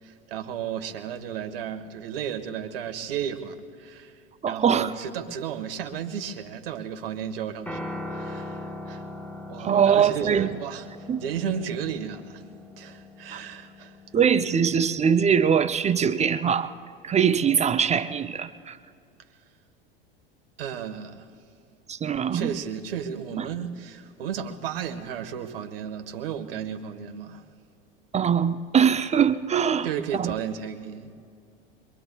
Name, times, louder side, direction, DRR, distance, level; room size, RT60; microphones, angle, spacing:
voice 1, 0.0-9.0 9.5-12.4 12.8-14.0 19.2-19.3 20.6-21.3 22.3-27.5 29.8-31.1, right 8 dB, 75° right, 1.4 m, -34 dB
voice 2, 4.4-4.9 9.6-10.5 11.1-11.2 13.3-13.4 14.1-16.7 17.0-18.8 21.9-22.5 23.4-23.5 28.1-29.9 30.1-30.3, right 7 dB, 25° right, 0.6 m, -22 dB
Piano, 7.7-15.9, left 1 dB, 5° left, 3.6 m, -40 dB
24.5 x 23.0 x 2.3 m
hypercardioid pair, 85°, 29 cm